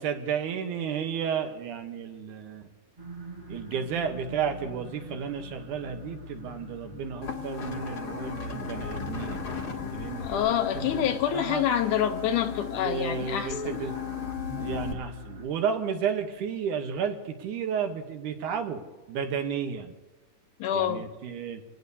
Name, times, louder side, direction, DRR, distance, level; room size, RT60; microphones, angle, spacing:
voice 1, 0.0-2.6 3.5-11.0 11.3-11.6 12.7-13.9 14.6-19.9 20.7-21.6, right 7 dB, 70° right, 5 dB, 2.5 m, -32 dB
sound 1, 3.0-15.4, left 2 dB, 40° right, 0.7 m, -44 dB
sound 2, 7.2-14.9, left 6 dB, 45° left, 1.5 m, -36 dB
voice 2, 10.2-13.8 20.6-21.1, left 9 dB, 75° left, 6 dB, 2.2 m, -27 dB
27.5 x 19.0 x 2.7 m, 1.2 s
omnidirectional pair, 3.8 m